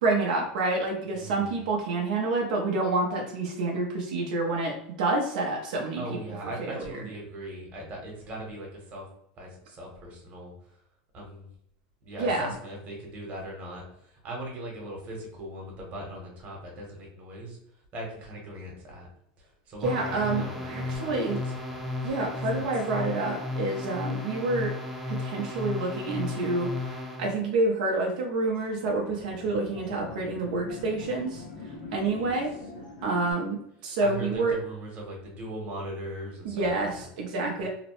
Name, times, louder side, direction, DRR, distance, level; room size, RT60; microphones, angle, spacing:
voice 1, 0.0-6.2 6.6-6.8 12.2-12.5 19.8-21.4 22.0-24.7 25.1-31.4 31.9-32.5 33.0-34.5 36.4-37.7, right 2 dB, 85° right, 0 dB, 0.6 m, -28 dB
voice 2, 1.1-1.6 6.0-9.0 9.4-10.8 11.1-11.5 12.0-17.6 17.9-19.1 19.4-22.1 22.5-22.7 31.8-32.4 34.0-37.0 37.6-37.7, right 1 dB, 35° right, 0 dB, 1.0 m, -40 dB
sound 1, 19.8-27.4, left 2 dB, ahead, 0.5 m, -34 dB
sound 2, 28.5-33.3, left 3 dB, 90° left, 0.9 m, -43 dB
2.8 x 2.0 x 2.9 m, 0.74 s
supercardioid pair, 140°, 4 cm